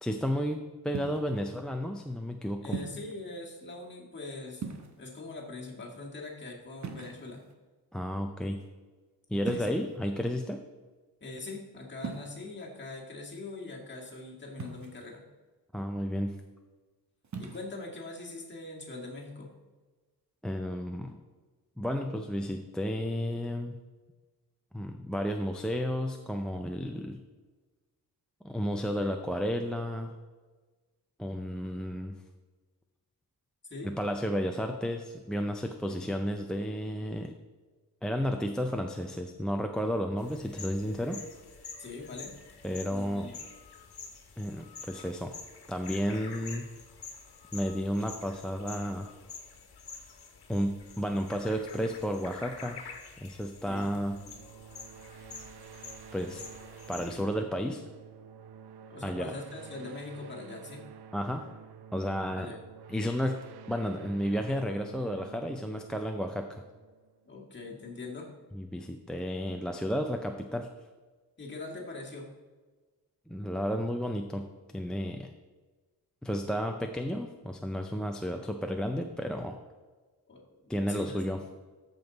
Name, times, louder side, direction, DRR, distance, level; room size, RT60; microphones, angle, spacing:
voice 1, 0.0-2.8 7.9-8.6 9.3-10.6 15.7-16.4 20.4-21.2 21.8-23.7 24.7-27.2 28.4-30.1 31.2-32.1 33.8-37.3 38.0-41.2 42.6-43.3 44.4-45.3 45.7-46.7 47.5-49.1 50.5-52.8 53.2-54.2 56.1-56.4 56.9-57.8 59.0-59.3 61.1-61.5 61.9-62.5 62.9-66.6 68.5-70.7 73.3-74.5 74.7-75.3 76.2-79.6 80.7-81.4, equal, ahead, 3 dB, 0.4 m, -32 dB
sound 1, 0.9-1.4 2.7-3.1 4.6-5.2 6.8-7.5 9.4-10.0 12.0-12.3 14.6-15.1 17.2-17.7, right 5 dB, 45° right, 1.0 m, -39 dB
voice 2, 2.6-4.6 5.0-7.4 9.5-9.7 11.2-15.2 17.4-19.5 33.7-33.9 35.8-36.0 41.8-42.3 42.8-43.3 53.7-53.9 58.9-60.8 62.4-62.6 67.3-68.3 71.4-72.3 80.3-81.2, left 3 dB, 30° left, -2 dB, 2.0 m, -42 dB
sound 2, 40.2-57.2, left 5 dB, 75° left, 1.4 m, -48 dB
sound 3, 54.1-67.5, right 7 dB, 75° right, 0.6 m, -50 dB
13.5 x 5.4 x 4.0 m, 1.3 s
wide cardioid pair, 145°, 39 cm